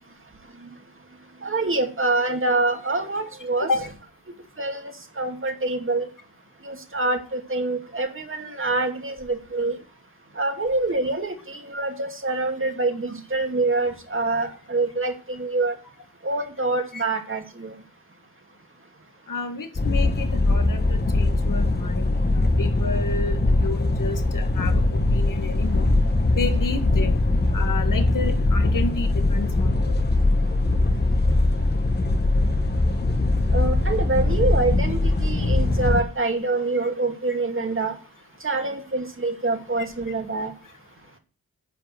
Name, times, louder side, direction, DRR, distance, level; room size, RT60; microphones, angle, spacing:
voice 1, 1.4-3.7 4.6-6.1 6.6-9.8 10.4-15.7 16.2-17.8 33.5-37.9 38.4-40.5, right 3 dB, 35° right, 4 dB, 2.5 m, -26 dB
voice 2, 19.3-25.9 26.3-27.1 27.5-29.9, left 3 dB, 60° left, 7 dB, 2.1 m, -31 dB
sound 1, 19.8-36.0, left 2 dB, 30° left, 1.4 m, -21 dB
10.0 x 5.6 x 7.9 m, 0.35 s
cardioid pair, 60°, 36 cm